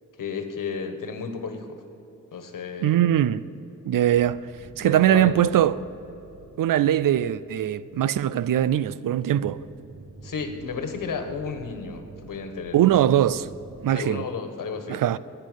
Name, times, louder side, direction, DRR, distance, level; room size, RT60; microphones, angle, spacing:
voice 1, 0.2-1.8 2.3-3.0 4.8-5.3 10.2-12.8 13.9-15.0, left 5 dB, 80° left, 1.4 m, -33 dB
voice 2, 2.8-3.4 3.8-4.5 4.8-5.8 6.6-9.6 12.7-13.5 13.8-14.2 14.9-15.2, right 11 dB, 90° right, 0.5 m, -21 dB
sound 1, 4.1-8.4 9.4-14.2, right 4 dB, 55° right, 1.1 m, -48 dB
11.0 x 9.8 x 9.2 m
wide cardioid pair, 135°, 32 cm